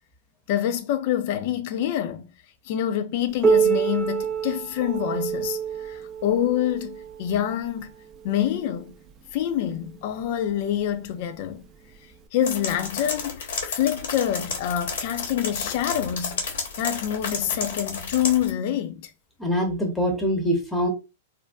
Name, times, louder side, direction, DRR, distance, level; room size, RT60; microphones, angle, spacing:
voice 1, 0.5-2.3 2.7-7.9 8.2-9.0 9.3-11.6 12.3-16.5 16.8-19.1, left 10 dB, 55° left, 0.5 m, -26 dB
Piano, 3.4-8.7 9.6-9.7 10.2-10.3 11.1-11.2 12.2-12.3, right 7 dB, 25° right, 0.5 m, -26 dB
sound 1, 12.4-18.5, left 4 dB, 75° left, 1.1 m, -32 dB
voice 2, 19.4-20.9, equal, ahead, 0.9 m, -24 dB
2.5 x 2.2 x 3.4 m
hypercardioid pair, 130°, 0 cm